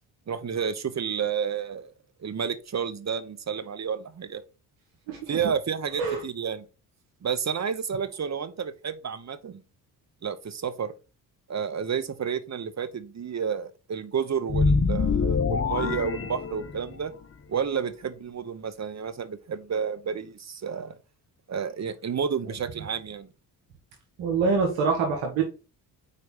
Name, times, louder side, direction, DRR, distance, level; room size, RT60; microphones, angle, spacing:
voice 1, 0.3-1.9 2.2-4.4 5.3-6.6 7.2-9.6 10.2-10.9 11.5-17.1 17.5-21.0 21.5-23.3, right 7 dB, 35° right, 0.9 m, -30 dB
sound 1, 14.5-17.1, left 4 dB, 30° left, 0.8 m, -25 dB
voice 2, 24.2-25.4, right 4 dB, 75° right, 1.6 m, -25 dB
4.6 x 4.2 x 5.4 m
hypercardioid pair, 50°, 47 cm